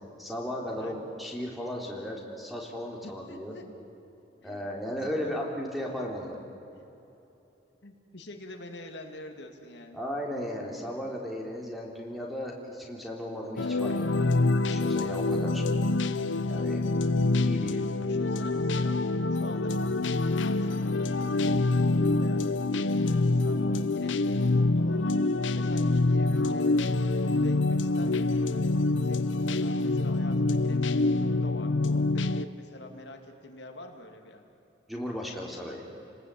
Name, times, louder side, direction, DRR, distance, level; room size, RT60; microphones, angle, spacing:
voice 1, 0.2-3.6 4.4-6.4 9.9-14.3 14.7-15.6 16.4-16.8 17.4-17.8 34.9-35.8, equal, ahead, -1 dB, 3.6 m, -36 dB
voice 2, 3.0-3.6 4.4-4.7 5.2-5.4 7.8-10.0 17.5-18.9 19.3-20.0 20.3-25.1 25.5-26.9 27.2-28.7 29.0-34.4, left 1 dB, 70° left, 3 dB, 2.4 m, -46 dB
sound 1, 13.6-32.4, left 2 dB, 85° left, 0.8 m, -26 dB
30.0 x 20.0 x 8.5 m, 2.9 s
head